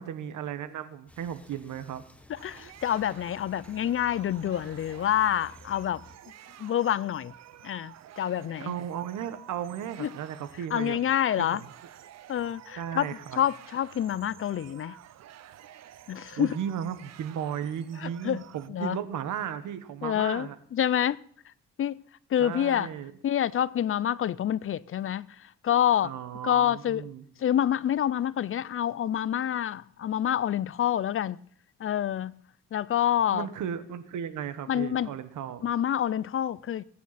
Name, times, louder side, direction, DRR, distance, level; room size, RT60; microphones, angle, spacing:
voice 1, 0.0-2.0 8.6-11.0 11.4-11.7 12.8-13.4 16.4-20.6 22.4-23.1 26.0-27.2 33.3-35.6, right 9 dB, 75° right, 1.4 m, -35 dB
sound 1, 1.1-6.2, left 2 dB, 5° left, 1.1 m, -53 dB
voice 2, 2.3-6.0 6.6-7.3 7.6-8.7 10.0-10.1 10.7-11.6 12.3-13.1 13.4-15.0 16.1-16.5 18.0-19.0 20.0-21.2 21.8-22.0 22.3-22.9 23.2-26.1 26.4-27.0 27.4-31.4 31.8-32.4 32.7-33.5 34.7-35.1 35.6-36.8, left 10 dB, 45° left, 0.5 m, -27 dB
sound 2, 2.3-18.7, right 12 dB, 60° right, 0.7 m, -51 dB
21.5 x 9.5 x 4.2 m
cardioid pair, 90°, 30 cm